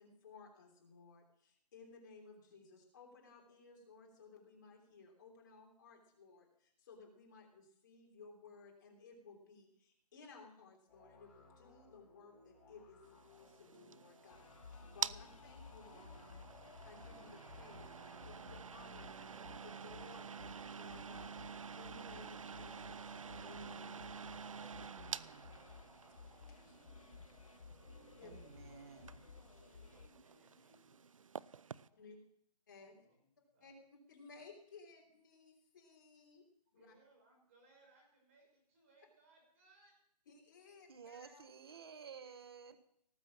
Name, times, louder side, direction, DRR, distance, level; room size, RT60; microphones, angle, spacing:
voice 1, 0.0-13.0 13.3-16.5 16.8-21.4 21.8-23.1 23.4-24.0 26.2-26.8 28.2-28.4 31.9-32.2 32.7-32.9 33.6-33.7 34.1-36.4 36.7-36.9 40.3-41.5, left 4 dB, 30° left, -1 dB, 3.3 m, -59 dB
sound 1, 10.9-29.3, left 3 dB, 5° left, 2.9 m, -65 dB
sound 2, 13.2-31.9, right 6 dB, 55° right, 0.5 m, -49 dB
sound 3, 14.3-30.1, left 5 dB, 55° left, 1.4 m, -57 dB
voice 2, 28.2-29.2 40.9-42.8, right 6 dB, 35° right, 11 dB, 1.1 m, -53 dB
voice 3, 29.2-31.2 31.8-32.0 32.8-33.7 36.7-40.0 41.2-41.4 42.2-42.3, right 2 dB, 20° right, 0 dB, 5.4 m, -69 dB
18.5 x 7.6 x 7.3 m, 0.69 s
hypercardioid pair, 175°, 21 cm